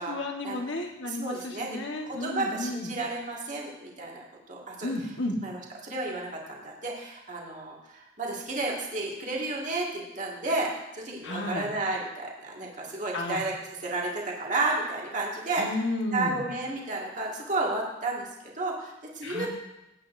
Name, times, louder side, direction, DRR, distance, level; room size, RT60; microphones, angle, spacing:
voice 1, 0.0-2.9 4.8-5.4 11.2-11.7 13.1-13.4 15.6-16.4 19.2-19.5, left 2 dB, 70° left, 2 dB, 1.3 m, -32 dB
voice 2, 1.0-1.8 2.1-4.9 5.4-13.5 13.8-15.6 16.1-19.5, right 2 dB, 40° right, -2 dB, 1.9 m, -32 dB
17.0 x 8.6 x 2.6 m, 0.93 s
head